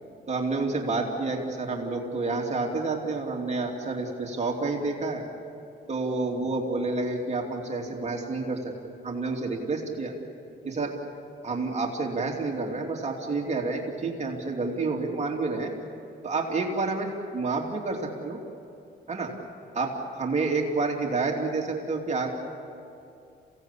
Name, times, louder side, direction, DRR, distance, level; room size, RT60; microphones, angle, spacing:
voice 1, 0.3-5.2 5.9-8.7 9.0-10.1 10.6-10.9 11.4-15.7 16.2-18.4 19.1-19.3 19.7-22.3, right 3 dB, 35° right, 0 dB, 2.9 m, -29 dB
28.0 x 17.0 x 8.5 m, 2.6 s
cardioid pair, 90°, 20 cm